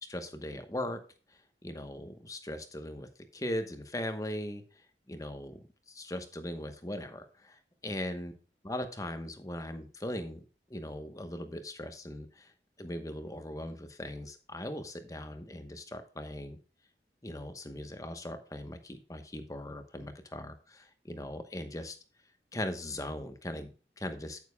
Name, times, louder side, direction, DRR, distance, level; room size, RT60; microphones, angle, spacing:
voice 1, 0.1-1.0 1.6-4.6 5.1-5.6 5.9-8.3 8.6-10.4 10.7-12.5 12.8-16.6 17.2-22.0 22.5-24.4, left 1 dB, 20° left, 8 dB, 1.0 m, -39 dB
9.4 x 9.1 x 2.2 m, 0.37 s
head